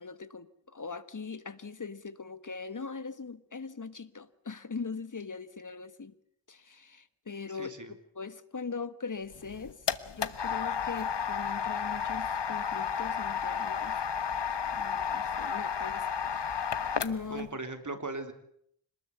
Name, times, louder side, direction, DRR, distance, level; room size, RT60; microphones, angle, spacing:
voice 1, 0.0-6.2 6.5-9.9 10.1-14.0 14.7-17.5, left 5 dB, 40° left, 13 dB, 1.5 m, -41 dB
voice 2, 7.5-7.9 17.3-18.3, right 2 dB, 40° right, 7 dB, 3.5 m, -38 dB
sound 1, 9.3-17.4, left 7 dB, 65° left, 1.3 m, -32 dB
26.0 x 20.5 x 8.1 m, 0.70 s
wide cardioid pair, 95°, 45 cm